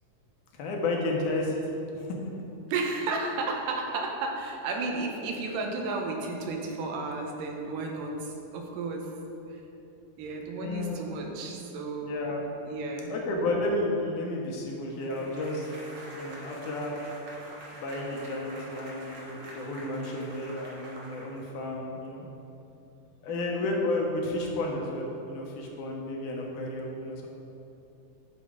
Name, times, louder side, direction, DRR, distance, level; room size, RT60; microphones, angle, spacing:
voice 1, 0.5-1.6 1.9-2.2 10.6-11.0 12.0-12.4 13.1-15.7 16.1-17.0 17.7-22.3 23.2-27.3, left 2 dB, 75° left, -1 dB, 2.3 m, -32 dB
voice 2, 2.7-9.1 9.5-9.6 10.2-12.2 12.7-13.1 23.3-23.7, right 3 dB, 80° right, 1 dB, 2.4 m, -33 dB
sound 1, 15.0-21.7, right 1 dB, 55° right, 1.5 m, -46 dB
10.0 x 4.1 x 4.9 m, 2.9 s
omnidirectional pair, 3.8 m